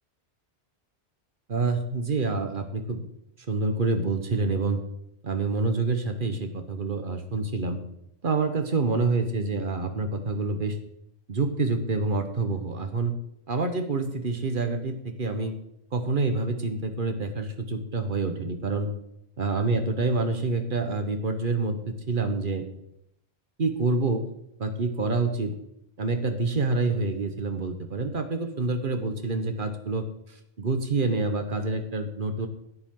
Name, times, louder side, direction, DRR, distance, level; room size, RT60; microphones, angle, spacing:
voice 1, 1.5-3.1 3.5-4.8 5.2-7.8 8.2-10.8 11.3-13.1 13.5-15.5 15.9-18.9 19.4-22.7 23.6-24.3 24.6-25.5 26.0-32.5, right 3 dB, 50° right, 7 dB, 1.2 m, -27 dB
11.0 x 10.5 x 3.8 m, 0.77 s
omnidirectional pair, 1.1 m